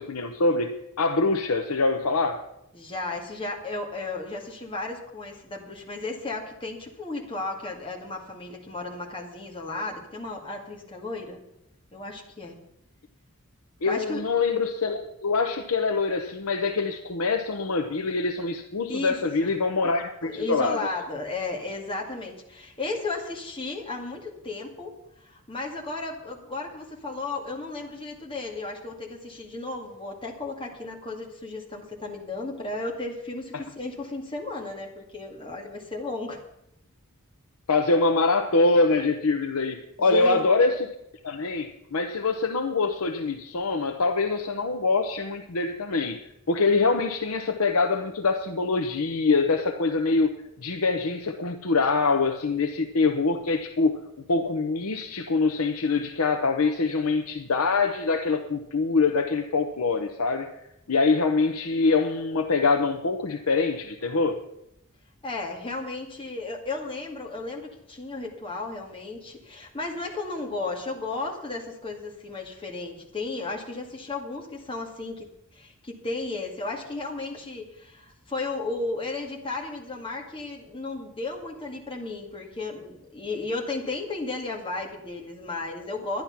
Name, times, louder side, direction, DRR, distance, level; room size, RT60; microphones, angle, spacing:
voice 1, 0.0-2.5 13.8-20.8 33.5-33.6 37.7-40.9 41.2-50.3 50.6-54.0 54.3-60.5 60.9-64.4, left 3 dB, 75° left, 5 dB, 0.8 m, -24 dB
voice 2, 2.7-11.4 11.9-12.6 13.9-14.3 18.9-19.5 20.2-25.0 25.2-36.4 40.0-40.4 65.2-75.3 75.5-86.2, left 3 dB, 25° left, 0 dB, 2.0 m, -34 dB
11.5 x 11.0 x 5.8 m, 0.82 s
head